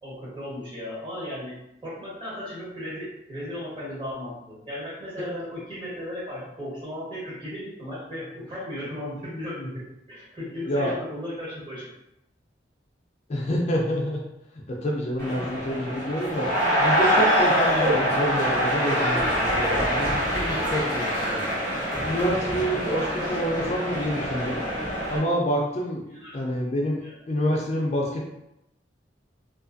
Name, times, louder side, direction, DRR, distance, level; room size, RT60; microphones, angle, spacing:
voice 1, 0.0-1.5 1.8-9.8 10.1-11.9 23.2-23.3 26.1-26.4 27.0-27.1, left 1 dB, 25° right, -8 dB, 1.3 m, -36 dB
voice 2, 13.3-14.2 14.7-16.5 16.8-21.5 22.0-24.6 25.1-26.0 26.3-27.0 27.3-28.3, equal, 40° left, -2 dB, 0.4 m, -27 dB
sound 1, 15.2-25.2, equal, 55° right, 1.2 m, -25 dB
2.5 x 2.4 x 2.5 m, 0.84 s
head